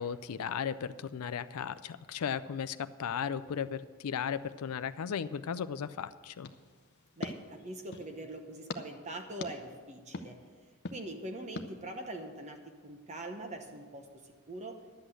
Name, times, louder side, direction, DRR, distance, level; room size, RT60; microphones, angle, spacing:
voice 1, 0.0-6.5, left 7 dB, 80° left, 13 dB, 0.4 m, -36 dB
sound 1, 6.4-8.1 8.7-8.8 9.4-9.5 10.1-10.3 10.8-11.0 11.6-11.7, left 2 dB, 50° left, 0.7 m, -42 dB
voice 2, 7.2-10.4 10.9-14.8, right 1 dB, 30° right, 5 dB, 0.9 m, -43 dB
11.5 x 8.1 x 7.7 m, 1.5 s
head